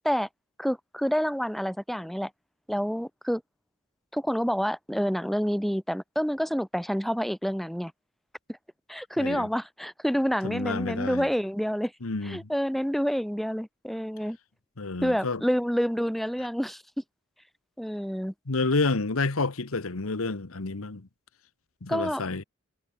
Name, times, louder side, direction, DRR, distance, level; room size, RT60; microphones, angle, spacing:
voice 1, 0.6-2.3 2.7-3.4 4.1-7.9 8.9-11.9 12.2-14.4 15.0-16.8 17.8-18.3 21.9-22.2, equal, ahead, 1.3 m, -28 dB
voice 2, 9.2-9.5 10.4-11.3 12.0-12.4 14.8-15.4 18.5-21.1 21.8-22.4, left 3 dB, 85° left, 1.3 m, -29 dB
head